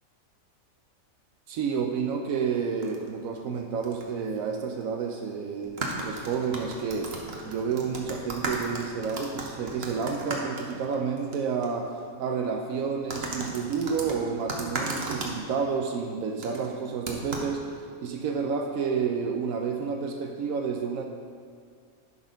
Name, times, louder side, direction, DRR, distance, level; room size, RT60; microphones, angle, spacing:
voice 1, 1.5-7.1 7.4-11.9 12.2-21.1, right 6 dB, 80° right, 3 dB, 1.0 m, -30 dB
sound 1, 2.8-3.1 3.8-4.0 4.3-4.4 5.6-11.4 11.6-11.7 13.1-15.4 16.4-16.7 17.1-17.5, right 2 dB, 50° right, 1.1 m, -35 dB
11.0 x 4.1 x 5.1 m, 2.1 s
omnidirectional pair, 1.4 m